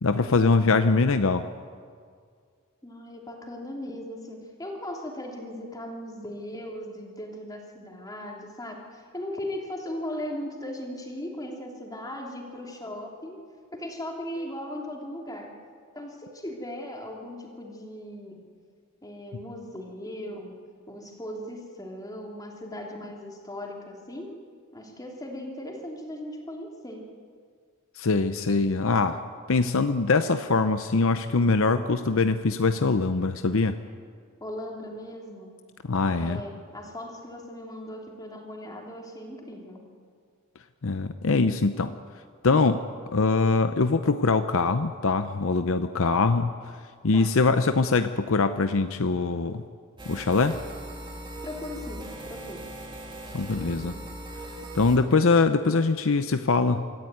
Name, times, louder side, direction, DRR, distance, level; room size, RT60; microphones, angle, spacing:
voice 1, 0.0-1.5 28.0-29.2 29.5-33.8 35.8-36.4 40.8-41.9 42.4-42.8 43.1-46.5 47.0-49.6 50.1-50.6 53.3-53.9 54.7-56.9, left 3 dB, 65° left, 10 dB, 0.7 m, -23 dB
voice 2, 2.8-13.4 13.7-15.5 15.9-18.4 19.0-20.5 20.9-24.3 24.7-27.0 34.4-35.5 36.1-39.8 47.1-47.3 51.4-52.7 53.6-54.0, left 1 dB, 15° left, 0 dB, 3.2 m, -38 dB
sound 1, 50.0-55.0, right 1 dB, 20° right, 2.9 m, -39 dB
26.0 x 14.0 x 9.3 m, 2.1 s
head